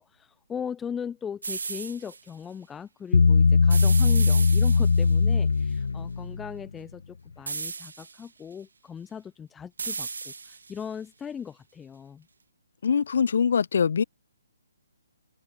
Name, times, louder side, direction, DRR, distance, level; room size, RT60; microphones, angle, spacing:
voice 1, 0.0-12.3, left 7 dB, 5° left, 1.1 m, -38 dB
sound 1, 1.4-2.2 3.7-5.1 7.5-8.2 9.8-10.8, right 4 dB, 80° right, 1.6 m, -35 dB
Bass guitar, 3.1-6.5, left 4 dB, 85° left, 1.2 m, -20 dB
voice 2, 12.8-14.0, left 6 dB, 50° left, 3.4 m, -23 dB
open air
hypercardioid pair, 175°, 0 cm